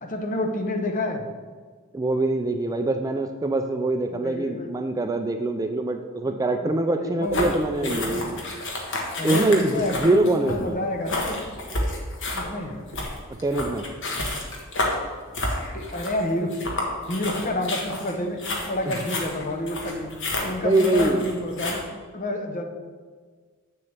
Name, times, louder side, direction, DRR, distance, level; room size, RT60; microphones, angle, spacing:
voice 1, 0.0-1.3 4.1-4.7 6.3-7.5 7.8-8.2 9.1-11.4 12.3-12.8 15.7-16.5 17.1-21.8 22.1-22.6, left 1 dB, 40° left, 4 dB, 0.8 m, -29 dB
voice 2, 1.9-8.4 9.2-10.8 13.4-13.9 18.9-19.0 20.6-21.2, right 2 dB, 15° right, 6 dB, 0.3 m, -24 dB
sound 1, 7.3-21.8, left 2 dB, 60° left, 1.4 m, -30 dB
7.8 x 6.9 x 3.3 m, 1.5 s
head